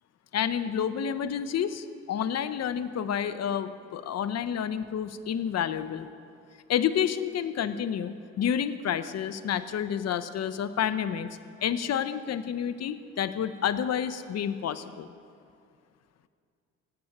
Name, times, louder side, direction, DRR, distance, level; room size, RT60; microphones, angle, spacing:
voice 1, 0.3-6.1 6.7-15.1, left 8 dB, 60° left, 12 dB, 0.8 m, -29 dB
16.5 x 8.6 x 9.0 m, 2.3 s
cardioid pair, 90°, 30 cm